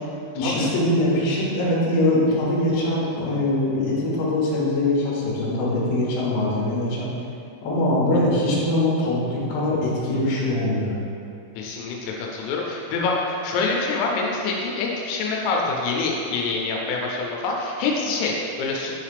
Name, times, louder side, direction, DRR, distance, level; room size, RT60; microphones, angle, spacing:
voice 1, 0.3-7.1 7.6-11.0, left 1 dB, 70° left, -7 dB, 2.8 m, -22 dB
voice 2, 11.6-18.9, left 3 dB, 85° left, -1 dB, 3.2 m, -26 dB
9.5 x 3.2 x 3.3 m, 2.5 s
omnidirectional pair, 5.8 m